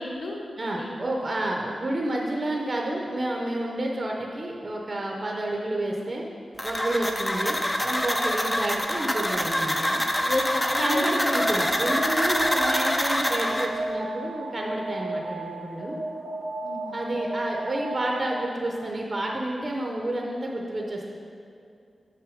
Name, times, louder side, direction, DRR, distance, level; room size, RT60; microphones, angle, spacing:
voice 1, 0.0-0.9 10.2-11.6 16.6-17.0, left 2 dB, 55° left, 0 dB, 0.9 m, -31 dB
voice 2, 0.6-6.2 6.6-10.0 10.8-16.0 16.9-21.0, right 1 dB, 30° right, -1 dB, 0.7 m, -30 dB
sound 1, 6.6-13.7, equal, 10° left, 0.4 m, -26 dB
Alarm, 11.5-18.6, right 2 dB, 75° right, 1.1 m, -34 dB
6.2 x 5.9 x 4.9 m, 2.4 s
wide cardioid pair, 145°, 0 cm